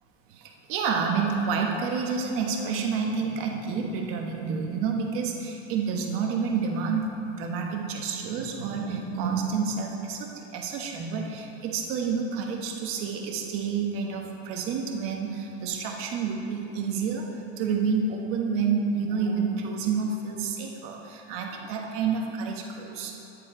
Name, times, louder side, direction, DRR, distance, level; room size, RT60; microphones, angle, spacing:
voice 1, 0.3-17.3 17.6-23.1, right 5 dB, 35° right, 2 dB, 1.3 m, -29 dB
11.0 x 9.8 x 5.0 m, 3.0 s
supercardioid pair, 170°, 36 cm